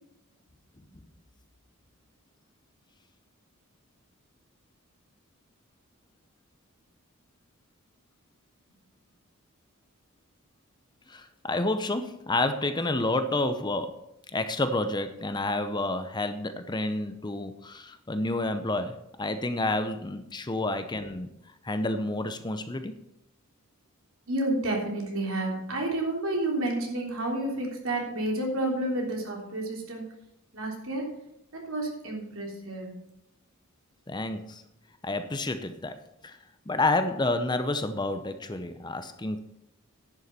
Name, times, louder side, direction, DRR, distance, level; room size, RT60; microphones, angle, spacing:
voice 1, 11.1-14.0 14.3-21.3 21.6-23.0 34.1-34.6 35.0-36.4 36.7-39.4, left 2 dB, 20° left, 9 dB, 0.6 m, -29 dB
voice 2, 24.3-30.0 30.5-31.2 31.5-33.0, right 1 dB, 70° right, 0 dB, 3.4 m, -30 dB
11.0 x 7.2 x 6.6 m, 0.83 s
head